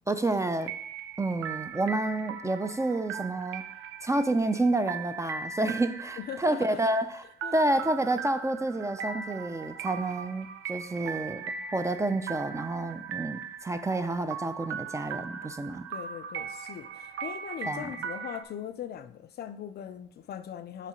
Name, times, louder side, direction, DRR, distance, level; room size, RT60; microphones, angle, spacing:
voice 1, 0.1-0.7 1.2-3.6 4.0-7.2 7.5-11.4 11.7-15.9 17.7-17.9, right 2 dB, 15° right, 0.3 m, -29 dB
sound 1, 0.6-18.4, right 6 dB, 80° right, 0.5 m, -39 dB
voice 2, 6.2-6.8 7.4-7.5 15.9-20.9, left 9 dB, 55° left, 0.4 m, -40 dB
6.6 x 3.1 x 5.0 m
cardioid pair, 90°, 20 cm